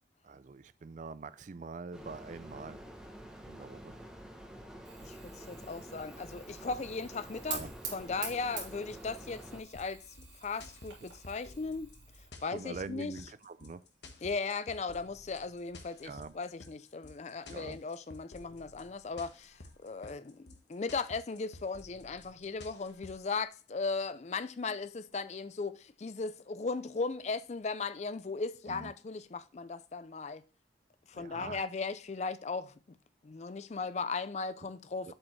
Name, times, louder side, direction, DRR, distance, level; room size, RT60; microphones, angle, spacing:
voice 1, 0.2-2.8 3.5-3.9 7.5-7.7 12.5-13.8 16.0-16.3 17.5-17.8 28.7-28.9 31.1-31.6, right 4 dB, 45° right, 0.4 m, -44 dB
sound 1, 1.9-9.6, equal, 5° right, 0.9 m, -49 dB
Fire, 4.8-12.3, right 6 dB, 80° right, 2.9 m, -46 dB
voice 2, 5.0-7.6 7.9-10.0 10.4-11.9 12.4-13.2 14.2-30.4 31.1-33.0 33.2-35.1, left 4 dB, 35° left, 0.4 m, -37 dB
sound 2, 9.7-23.3, left 2 dB, 70° left, 1.2 m, -53 dB
7.3 x 5.1 x 3.2 m
head